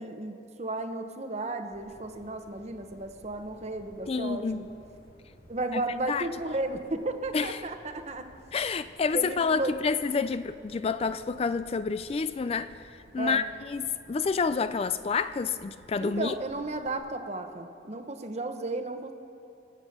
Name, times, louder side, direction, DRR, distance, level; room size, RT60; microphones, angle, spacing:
voice 1, 0.0-4.7 5.5-8.3 9.1-9.7 13.2-13.5 16.0-19.1, right 2 dB, 35° right, 7 dB, 1.0 m, -34 dB
sound 1, 1.7-16.9, equal, 50° left, 3.5 m, -56 dB
voice 2, 4.1-4.6 5.7-5.8 6.1-6.3 7.3-7.6 8.5-16.3, left 5 dB, 35° left, 13 dB, 0.3 m, -29 dB
24.5 x 8.2 x 6.6 m, 2.6 s
head